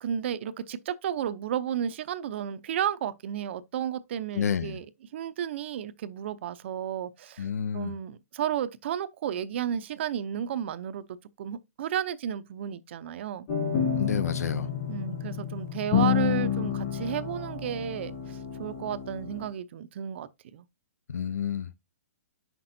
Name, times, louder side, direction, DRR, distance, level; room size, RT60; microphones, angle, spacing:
voice 1, 0.0-4.9 5.1-7.5 7.7-11.0 11.4-13.5 14.9-20.6, right 9 dB, 50° right, 0.6 m, -33 dB
voice 2, 4.3-4.8 7.4-7.9 13.9-14.7 21.1-21.7, left 7 dB, 90° left, 0.7 m, -30 dB
sound 1, 13.5-19.5, left 8 dB, 50° left, 2.7 m, -29 dB
7.4 x 5.9 x 2.6 m
hypercardioid pair, 160°, 8 cm